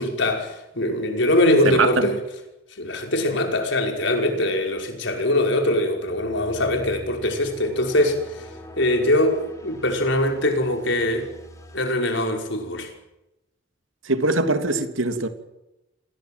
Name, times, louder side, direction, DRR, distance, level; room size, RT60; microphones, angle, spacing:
voice 1, 0.0-2.2 2.7-11.3 11.7-12.9, left 1 dB, 65° left, 5.5 m, -22 dB
voice 2, 1.6-2.1 14.0-15.3, right 2 dB, 85° right, 2.9 m, -22 dB
sound 1, 6.0-11.8, left 1 dB, 15° left, 5.3 m, -43 dB
27.0 x 20.0 x 7.7 m
head